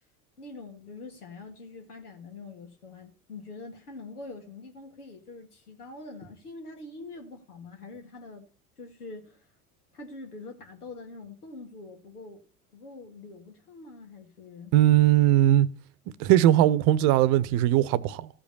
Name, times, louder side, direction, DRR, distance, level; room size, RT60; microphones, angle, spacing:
voice 1, 0.4-8.5 8.8-9.4 9.9-12.4 12.7-14.7, left 3 dB, 80° left, 2.3 m, -44 dB
voice 2, 14.7-15.7 16.2-18.3, right 13 dB, 50° right, 0.9 m, -20 dB
14.0 x 5.1 x 6.9 m
figure-of-eight pair, 70°, 44 cm